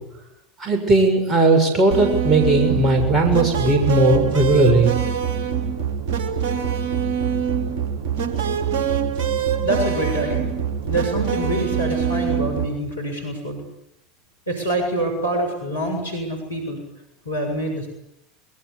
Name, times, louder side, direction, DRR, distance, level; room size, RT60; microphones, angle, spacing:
voice 1, 0.6-4.9, right 2 dB, 25° right, 4 dB, 6.8 m, -17 dB
sound 1, 1.9-12.7, right 7 dB, 55° right, 3.6 m, -24 dB
voice 2, 9.6-10.5 10.8-13.6 14.5-16.8 17.3-17.9, right 1 dB, 85° left, 2 dB, 7.0 m, -26 dB
27.0 x 22.5 x 8.6 m, 0.81 s
figure-of-eight pair, 75°, 0 cm